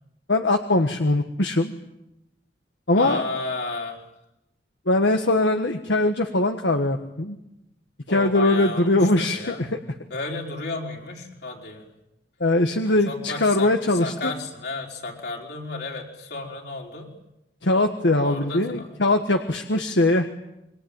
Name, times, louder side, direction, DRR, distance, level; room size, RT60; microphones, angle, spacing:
voice 1, 0.3-1.7 2.9-3.2 4.8-7.4 8.1-9.7 12.4-14.3 17.6-20.3, left 2 dB, 85° left, 5 dB, 1.6 m, -21 dB
voice 2, 3.0-4.0 8.1-9.7 10.1-11.9 13.1-17.1 18.2-19.0 19.3-19.5, left 3 dB, 65° left, 0 dB, 5.2 m, -33 dB
27.0 x 23.0 x 8.9 m, 0.90 s
head